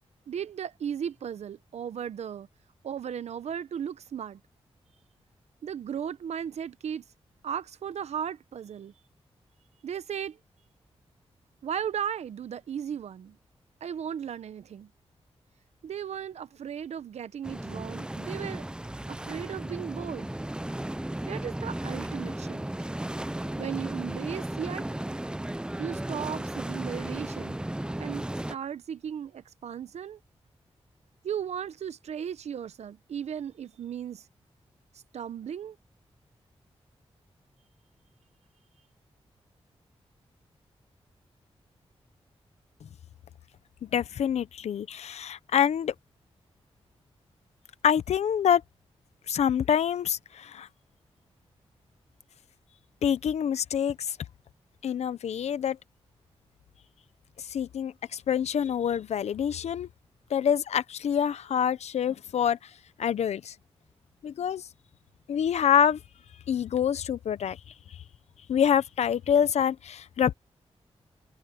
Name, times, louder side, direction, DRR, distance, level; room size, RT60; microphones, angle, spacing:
voice 1, 0.3-2.5 2.8-4.4 5.6-7.0 7.4-8.9 9.8-10.4 11.6-13.4 13.8-14.9 15.8-18.6 19.1-20.3 21.3-22.6 23.6-24.9 25.8-27.6 28.0-30.2 31.2-34.3 34.9-35.8, right 8 dB, 85° right, 0.9 m, -36 dB
sound 1, 17.4-28.6, right 1 dB, 10° right, 0.5 m, -35 dB
voice 2, 43.8-45.9 47.8-48.6 49.3-50.7 53.0-54.2 54.8-55.8 57.5-59.9 60.3-62.6 63.0-63.5 64.2-64.6 65.3-66.0 66.5-67.6 68.5-70.3, left 8 dB, 85° left, 0.8 m, -26 dB
cardioid pair, 65°, 11 cm